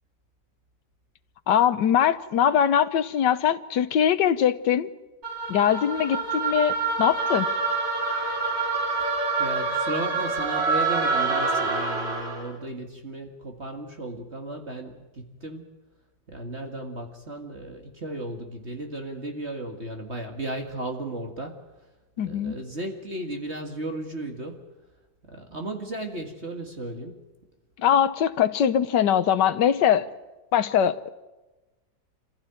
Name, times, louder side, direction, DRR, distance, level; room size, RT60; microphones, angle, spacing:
voice 1, 1.5-4.9 5.5-7.5 22.2-22.6 27.8-30.1 30.5-31.1, left 9 dB, 70° left, 12 dB, 1.6 m, -22 dB
sound 1, 5.2-12.5, right 4 dB, 80° right, 5.0 m, -26 dB
voice 2, 9.4-15.7 16.3-21.6 22.2-24.6 25.3-27.2, right 1 dB, 35° right, 3 dB, 2.2 m, -35 dB
26.5 x 15.5 x 9.1 m, 1.1 s
omnidirectional pair, 1.9 m